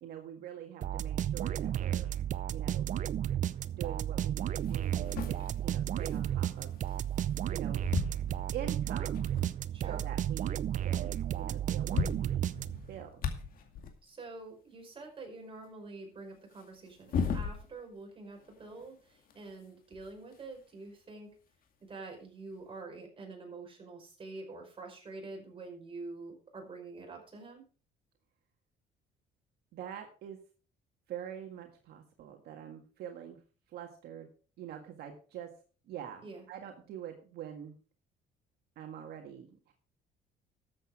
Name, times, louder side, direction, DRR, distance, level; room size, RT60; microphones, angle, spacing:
voice 1, 0.0-2.1 2.5-2.9 3.8-5.4 5.6-6.7 7.5-7.8 8.5-9.3 9.9-10.6 10.8-12.5 12.9-13.1 29.7-30.4 31.1-33.4 33.7-34.3 34.6-35.5 35.9-37.8 38.8-39.7, right 9 dB, 70° right, 3 dB, 1.8 m, -44 dB
sound 1, 0.8-13.0, right 10 dB, 50° right, 0.6 m, -33 dB
sound 2, 4.0-4.1 4.6-7.5 7.8-9.6 10.1-10.2 10.4-10.6 11.4-11.5 11.7-14.0 16.5-18.0 18.4-20.6 21.6-21.7 22.7-22.8, left 5 dB, 60° left, 2.2 m, -39 dB
voice 2, 9.7-10.0 14.0-21.3 21.9-27.6 36.2-36.5, right 3 dB, 30° right, 2 dB, 5.2 m, -46 dB
13.0 x 8.0 x 4.8 m, 0.39 s
cardioid pair, 110°, 17 cm